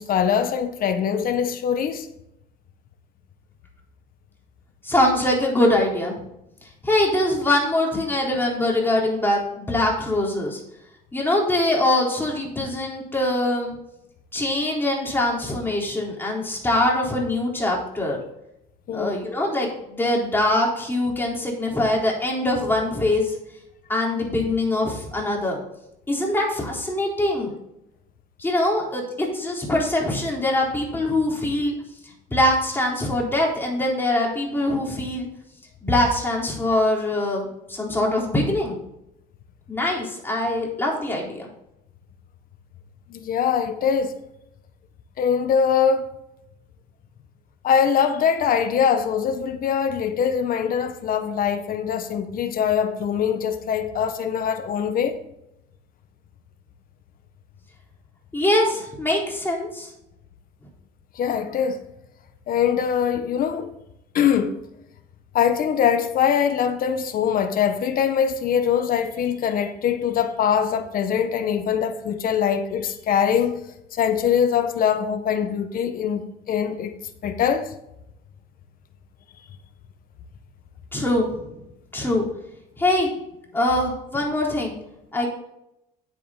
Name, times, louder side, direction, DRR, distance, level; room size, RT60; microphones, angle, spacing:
voice 1, 0.0-2.1 18.9-19.1 43.1-44.2 45.2-46.1 47.6-55.2 61.1-61.8 62.5-63.7 64.1-64.6 65.3-73.6 73.9-76.9 77.2-77.7, left 7 dB, 55° left, 1.3 m, -22 dB
voice 2, 4.8-6.2 6.8-10.6 11.1-13.7 14.3-18.2 18.9-23.4 23.9-25.6 26.1-27.5 28.4-31.7 32.3-35.3 35.8-38.8 39.7-41.5 58.3-59.9 80.9-81.5 81.9-82.3 82.8-83.1 83.5-84.8 85.1-85.3, left 1 dB, 10° left, 3.9 m, -23 dB
9.9 x 8.1 x 4.1 m
cardioid pair, 110°, 17 cm